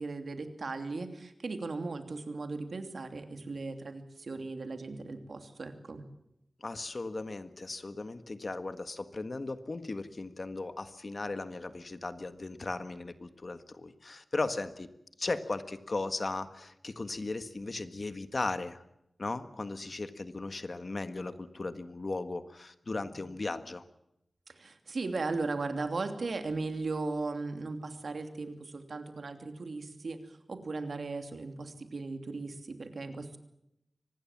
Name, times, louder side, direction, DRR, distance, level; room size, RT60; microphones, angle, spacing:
voice 1, 0.0-6.0 23.0-23.2 24.5-33.4, right 3 dB, 75° right, 7 dB, 2.9 m, -37 dB
voice 2, 6.6-14.9 15.2-18.8 19.2-23.8, left 3 dB, 50° left, 10 dB, 1.6 m, -37 dB
24.5 x 19.5 x 7.4 m, 0.83 s
wide cardioid pair, 90°, 0 cm